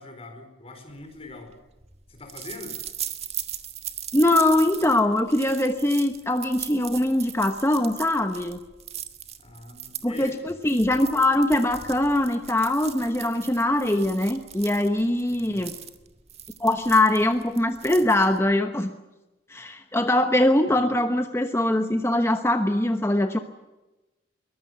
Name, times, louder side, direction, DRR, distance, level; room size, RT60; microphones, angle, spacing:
voice 1, 0.0-1.5 2.1-2.8 9.4-10.4 15.3-15.7 20.7-20.8, left 2 dB, 30° left, 5 dB, 4.8 m, -43 dB
sound 1, 1.1-18.5, right 10 dB, 35° right, 1.6 m, -39 dB
voice 2, 4.1-8.6 10.0-15.7 16.6-18.9 19.5-23.4, left 1 dB, 15° left, 7 dB, 1.1 m, -22 dB
23.0 x 19.5 x 8.3 m, 1.0 s
head